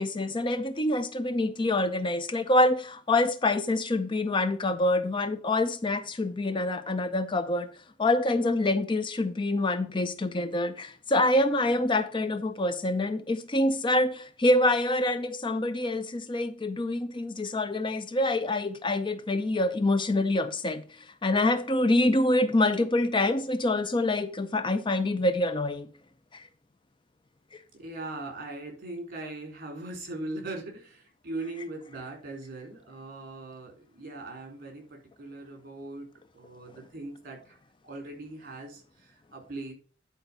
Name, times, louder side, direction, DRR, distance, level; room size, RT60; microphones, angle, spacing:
voice 1, 0.0-7.7 8.0-25.9 26.3-26.4 27.5-27.6, left 2 dB, 25° left, 0.5 m, -26 dB
voice 2, 27.7-36.1 36.3-37.6 37.9-39.7, right 2 dB, 50° right, 3.7 m, -40 dB
10.5 x 4.5 x 5.5 m
head